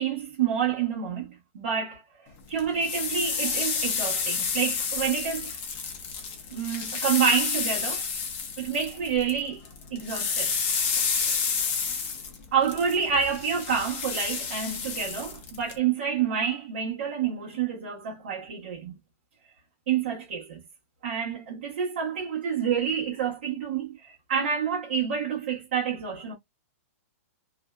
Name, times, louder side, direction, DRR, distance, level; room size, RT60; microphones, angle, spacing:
voice 1, 0.0-2.0 2.5-5.6 6.5-8.0 8.6-9.6 9.9-10.6 12.5-18.9 19.9-20.6 21.0-26.3, right 7 dB, 45° right, 1.0 m, -28 dB
sound 1, 2.6-9.4 9.7-15.8, left 5 dB, 20° left, 0.5 m, -30 dB
2.6 x 2.1 x 2.2 m
hypercardioid pair, 175°, 8 cm